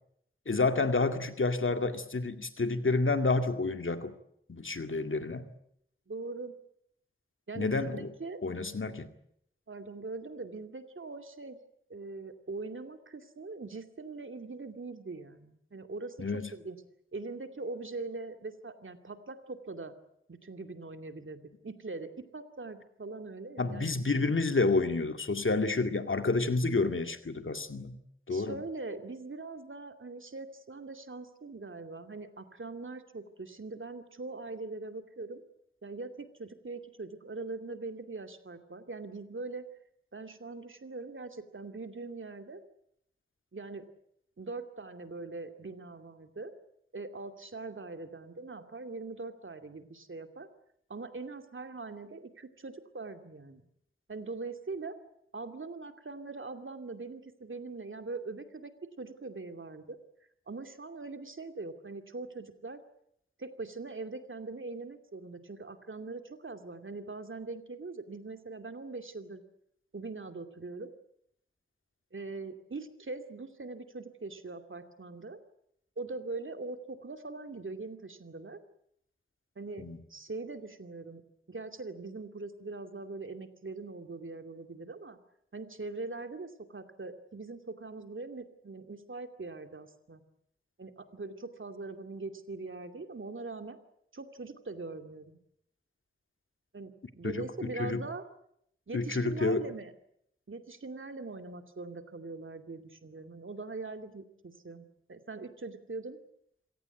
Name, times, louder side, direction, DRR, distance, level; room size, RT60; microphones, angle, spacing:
voice 1, 0.5-4.1 4.5-5.5 7.6-8.1 8.4-9.1 16.2-16.5 23.6-28.0 28.3-28.6 79.8-80.0 97.2-98.0 98.9-99.6, left 3 dB, 70° left, 7 dB, 2.2 m, -29 dB
voice 2, 6.1-6.5 7.5-8.4 9.7-11.6 11.9-16.8 17.1-19.9 20.3-23.9 28.3-35.4 35.8-39.7 40.1-42.6 43.5-43.9 44.4-46.5 46.9-50.5 50.9-53.7 54.1-55.0 55.3-58.7 59.0-60.0 60.5-62.8 63.4-69.4 69.9-70.9 72.1-75.4 76.0-78.6 79.6-81.2 81.5-85.2 85.5-90.2 90.8-93.8 94.1-95.4 96.7-98.2 98.9-99.9 100.5-106.2, right 3 dB, 70° right, 7 dB, 2.5 m, -42 dB
27.0 x 17.5 x 9.3 m, 0.74 s
wide cardioid pair, 45°, 21 cm